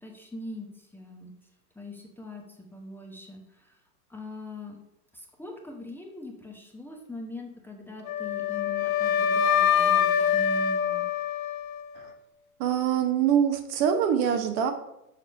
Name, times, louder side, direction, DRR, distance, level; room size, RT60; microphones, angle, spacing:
voice 1, 0.0-1.3 1.8-3.8 4.1-4.8 5.1-11.1, left 2 dB, 5° left, 1 dB, 0.9 m, -42 dB
Wind instrument woodwind instrument, 8.1-12.2, left 8 dB, 60° left, 0.8 m, -25 dB
voice 2, 12.6-14.7, right 8 dB, 40° right, 7 dB, 1.0 m, -24 dB
6.7 x 4.7 x 5.6 m, 0.89 s
hypercardioid pair, 100°, 47 cm